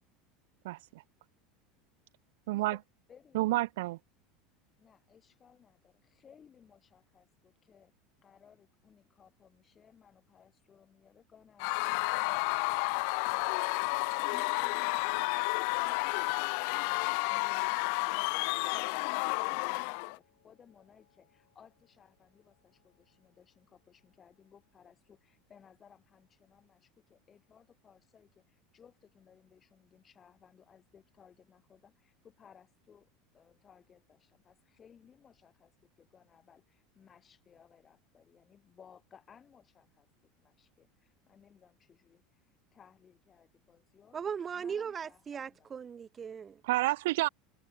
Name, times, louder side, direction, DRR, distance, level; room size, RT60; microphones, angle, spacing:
voice 1, 0.6-1.0 2.5-2.8 3.3-4.0 46.6-47.3, right 19 dB, 80° right, 1.0 m, -29 dB
voice 2, 2.5-2.8 3.1-3.6 4.8-7.9 8.2-12.7 13.0-40.1 40.4-44.2 44.5-45.8, left 7 dB, 30° left, 7.1 m, -61 dB
Screaming / Cheering / Crowd, 11.6-20.2, left 40 dB or more, 70° left, 0.4 m, -31 dB
sound 1, 11.7-22.1 22.4-23.0, left 14 dB, 90° left, 1.9 m, -56 dB
voice 3, 44.1-46.6, right 7 dB, 25° right, 0.7 m, -38 dB
supercardioid pair, 110°, 0 cm